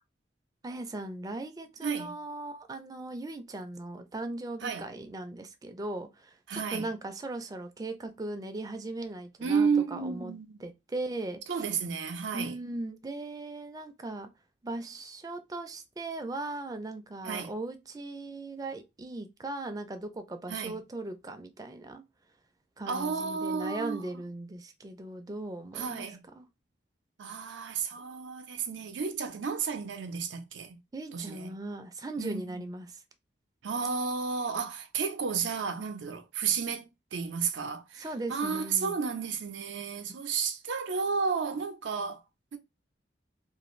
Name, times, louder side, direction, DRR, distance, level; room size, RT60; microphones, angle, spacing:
voice 1, 0.6-10.3 10.6-11.7 12.3-14.3 14.6-22.0 22.8-26.1 26.4-26.5 30.9-32.9 37.9-38.9, right 2 dB, 20° right, 0.4 m, -38 dB
voice 2, 1.8-2.2 4.6-4.9 6.5-6.9 9.4-10.6 11.5-12.6 17.2-17.5 20.5-20.8 22.9-24.1 25.7-26.2 27.2-30.8 31.1-31.5 32.2-32.7 33.6-42.2 42.5-42.6, right 5 dB, 90° right, 0.5 m, -32 dB
2.5 x 2.4 x 3.0 m
head